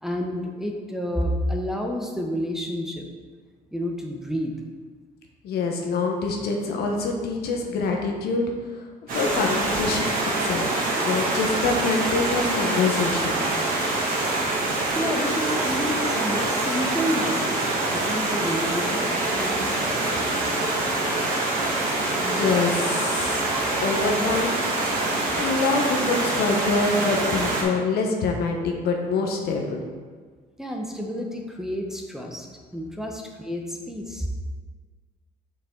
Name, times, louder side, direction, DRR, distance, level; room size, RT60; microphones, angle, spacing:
voice 1, 0.0-3.1 3.7-4.6 14.9-19.9 25.2-25.4 30.6-32.5 32.7-34.3, equal, 5° right, 0 dB, 0.8 m, -30 dB
voice 2, 5.4-8.5 9.1-10.1 10.4-10.7 11.0-13.4 22.1-23.4 23.8-24.6 25.4-29.8, left 4 dB, 70° left, 2 dB, 1.1 m, -25 dB
Stream, 9.1-27.6, right 2 dB, 55° right, 1.8 m, -25 dB
6.5 x 5.6 x 3.8 m, 1.5 s
cardioid pair, 110°, 17 cm